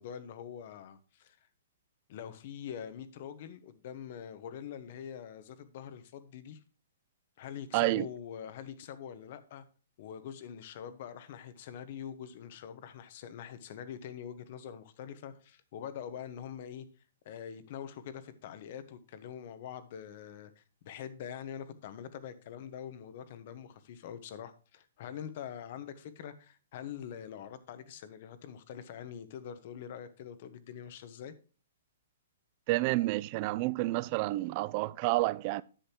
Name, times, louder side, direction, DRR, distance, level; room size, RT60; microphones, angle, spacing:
voice 1, 0.0-1.4 2.1-6.6 7.4-9.6 10.0-16.9 17.2-31.3, left 8 dB, 45° left, 1.1 m, -44 dB
voice 2, 7.7-8.1 32.7-35.6, right 19 dB, 35° right, 0.3 m, -29 dB
10.0 x 7.6 x 2.9 m
hypercardioid pair, 160°, 0 cm